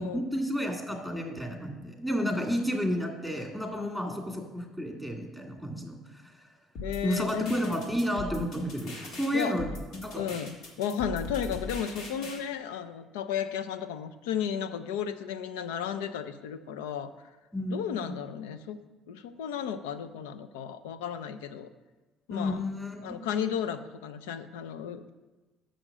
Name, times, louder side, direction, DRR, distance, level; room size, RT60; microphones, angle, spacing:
voice 1, 0.0-6.3 7.0-10.2 17.5-18.2 22.3-23.2, equal, 5° left, 1 dB, 2.2 m, -31 dB
voice 2, 6.8-7.8 9.3-9.6 10.2-17.1 17.7-18.8 19.1-21.7 22.3-22.6 23.0-25.2, left 8 dB, 85° left, 11 dB, 0.5 m, -34 dB
sound 1, 6.8-12.4, left 3 dB, 70° left, 1.8 m, -40 dB
6.3 x 6.1 x 6.6 m, 1.2 s
hypercardioid pair, 65°, 0 cm